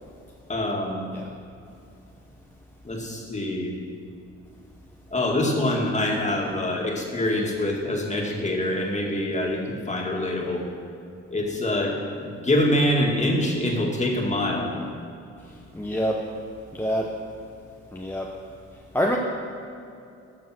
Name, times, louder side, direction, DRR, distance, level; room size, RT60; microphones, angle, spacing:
voice 1, 0.5-1.0 2.8-3.7 5.1-10.7 11.3-14.7, left 1 dB, 25° left, -1 dB, 2.3 m, -25 dB
voice 2, 15.7-16.3 16.7-17.2 17.9-18.3 18.9-19.2, equal, 5° left, -1 dB, 1.0 m, -26 dB
14.0 x 7.0 x 6.2 m, 2.6 s
cardioid pair, 90°, 30 cm